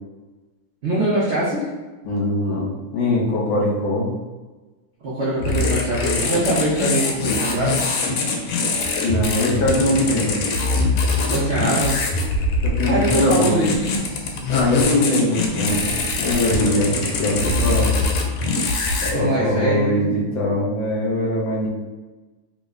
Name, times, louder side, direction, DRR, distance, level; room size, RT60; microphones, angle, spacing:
voice 1, 0.8-1.7 5.0-7.9 11.3-12.0 12.8-13.9 16.5-16.8 19.1-20.1, right 1 dB, 70° right, -8 dB, 0.6 m, -22 dB
voice 2, 2.0-4.1 9.0-10.3 12.6-13.6 14.5-15.9 16.2-17.9 19.0-21.7, left 1 dB, 70° left, -4 dB, 1.6 m, -21 dB
sound 1, 5.4-19.1, left 3 dB, 85° left, 1.5 m, -23 dB
3.6 x 2.1 x 3.6 m, 1.2 s
omnidirectional pair, 2.3 m